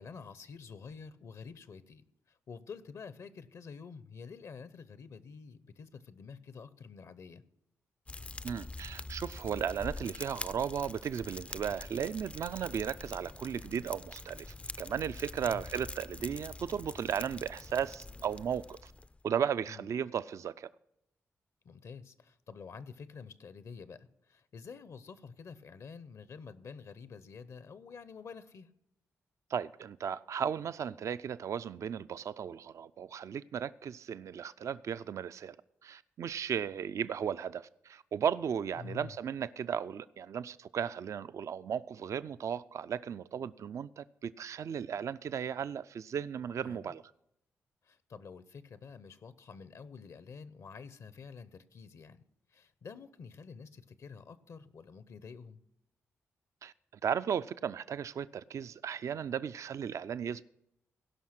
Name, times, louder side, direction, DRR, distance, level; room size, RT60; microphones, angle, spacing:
voice 1, 0.0-7.4 15.4-15.6 19.7-19.9 21.6-28.7 38.8-39.1 46.6-46.9 47.8-52.2 52.5-55.6, left 5 dB, 60° left, 0.6 m, -48 dB
Fire, 8.1-19.2, left 2 dB, 20° left, 0.3 m, -45 dB
voice 2, 8.4-14.5 14.8-18.9 19.2-20.7 29.5-35.6 35.8-47.0 56.6-56.7 57.0-60.4, right 8 dB, 60° right, 0.3 m, -35 dB
16.5 x 5.7 x 5.8 m
supercardioid pair, 55°, 6 cm